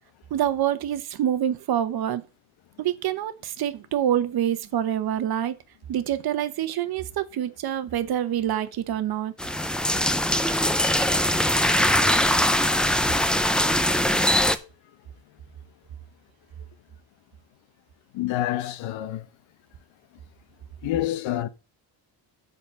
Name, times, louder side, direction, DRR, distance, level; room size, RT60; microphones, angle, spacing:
voice 1, 0.3-2.2 2.8-5.6 5.9-9.3, right 10 dB, 55° right, 1.0 m, -26 dB
sound 1, 9.4-14.6, left 1 dB, ahead, 0.4 m, -22 dB
voice 2, 18.1-19.3 20.8-21.5, left 13 dB, 85° left, 1.0 m, -28 dB
8.6 x 4.2 x 6.7 m
cardioid pair, 145°, 45 cm